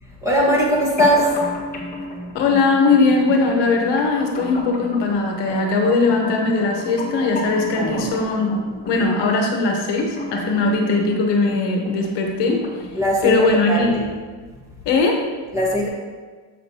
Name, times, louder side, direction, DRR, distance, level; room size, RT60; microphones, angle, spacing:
voice 1, 0.2-1.4 7.8-8.0 12.9-14.1 15.5-15.9, equal, 5° right, -5 dB, 1.2 m, -20 dB
sound 1, 1.0-13.0, left 1 dB, 20° left, 1.1 m, -33 dB
voice 2, 2.3-8.5 8.9-12.6 13.2-14.0 14.8-15.2, left 3 dB, 55° left, 2 dB, 1.2 m, -19 dB
7.1 x 6.6 x 2.8 m, 1.4 s
cardioid pair, 145°, 49 cm